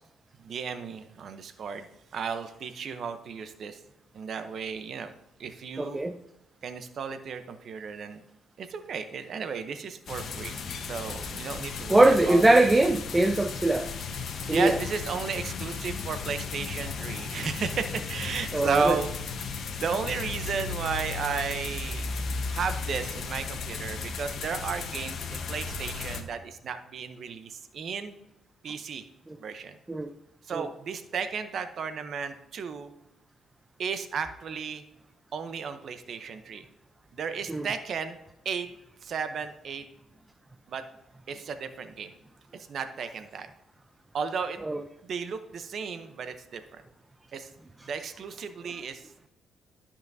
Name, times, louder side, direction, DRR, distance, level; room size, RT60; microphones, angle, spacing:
voice 1, 0.4-1.9 2.1-3.8 4.1-5.1 5.4-6.0 6.6-8.2 8.6-10.5 10.9-12.4 14.5-19.1 19.8-22.1 22.5-28.1 28.6-29.0 29.4-29.8 30.5-32.9 33.8-34.8 35.3-36.6 37.1-38.2 38.4-38.7 39.0-39.8 40.7-40.8 41.3-42.1 42.7-43.5 44.1-44.6 45.0-46.8 47.3-47.5 47.9-49.0, right 6 dB, 60° right, 9 dB, 0.7 m, -34 dB
voice 2, 5.8-6.2 11.9-13.9 14.5-14.8 18.5-19.0 29.3-29.4 29.9-30.1 30.5-30.6 37.5-37.7 44.6-44.8 47.8-47.9, right 2 dB, 15° right, 9 dB, 0.4 m, -22 dB
sound 1, 10.1-26.2, left 4 dB, 60° left, 1.0 m, -36 dB
sound 2, 13.9-20.8, left 8 dB, 80° left, 0.7 m, -41 dB
13.0 x 5.7 x 2.7 m, 0.93 s
cardioid pair, 90°, 0 cm